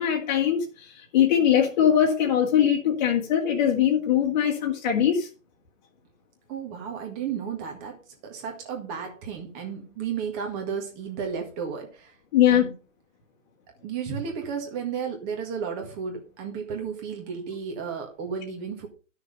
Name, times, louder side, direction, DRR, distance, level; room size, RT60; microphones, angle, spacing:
voice 1, 0.0-5.3 12.3-12.7, left 9 dB, 35° left, -1 dB, 1.9 m, -21 dB
voice 2, 6.5-12.1 12.5-12.7 13.8-18.9, right 6 dB, 20° right, 2 dB, 1.8 m, -33 dB
12.0 x 6.4 x 5.4 m, 0.35 s
figure-of-eight pair, 140°, 40 cm